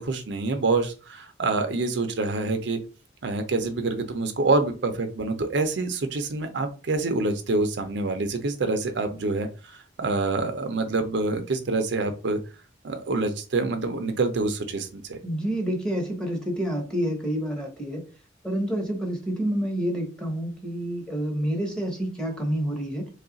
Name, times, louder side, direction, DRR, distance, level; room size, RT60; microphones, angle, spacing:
voice 1, 0.0-2.8 3.2-12.4 12.8-15.2, right 3 dB, 60° right, 7 dB, 0.5 m, -26 dB
voice 2, 15.2-18.0 18.4-23.1, right 1 dB, 5° left, 0 dB, 1.0 m, -28 dB
3.2 x 2.4 x 3.9 m, 0.33 s
head